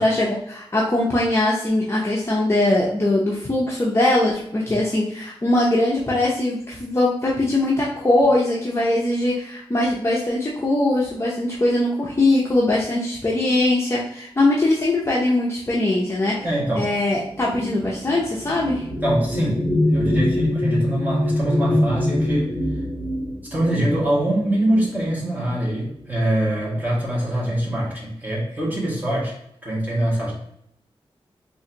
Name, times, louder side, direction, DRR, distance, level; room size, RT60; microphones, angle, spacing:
voice 1, 0.0-16.4 16.8-18.9, left 2 dB, 25° left, -5 dB, 0.6 m, -21 dB
sound 1, 16.2-25.1 26.0-26.2 26.5-27.1, left 1 dB, 65° right, 0.9 m, -25 dB
voice 2, 16.4-16.9 19.0-22.5 23.5-29.3 29.6-30.3, right 1 dB, 20° right, -5 dB, 1.4 m, -23 dB
3.8 x 2.5 x 2.8 m, 0.75 s
wide cardioid pair, 100°, 10 cm